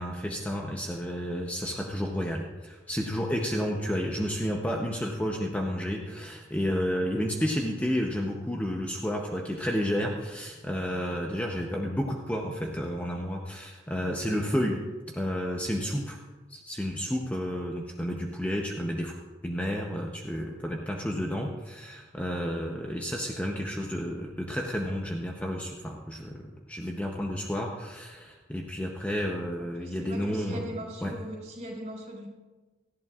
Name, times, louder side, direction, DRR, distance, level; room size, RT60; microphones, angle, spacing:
voice 1, 0.0-14.8 15.1-16.2 16.5-30.7 31.0-31.1, equal, 10° left, 0 dB, 0.7 m, -31 dB
voice 2, 29.6-32.3, right 1 dB, 35° right, 0 dB, 4.3 m, -40 dB
18.0 x 13.5 x 2.4 m, 1.3 s
head